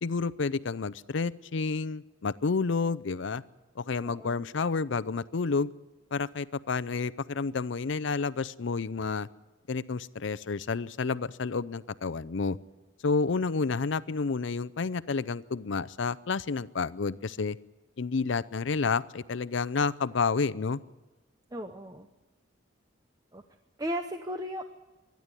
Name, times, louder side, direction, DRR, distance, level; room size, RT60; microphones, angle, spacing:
voice 1, 0.0-3.4 3.8-5.7 6.1-9.3 9.7-12.6 13.0-17.6 18.0-20.8, left 4 dB, 70° left, 15 dB, 0.6 m, -30 dB
voice 2, 4.0-4.5 21.5-22.1 23.3-23.4 23.8-24.6, equal, 20° right, 7 dB, 0.7 m, -36 dB
25.5 x 10.5 x 9.7 m, 1.1 s
head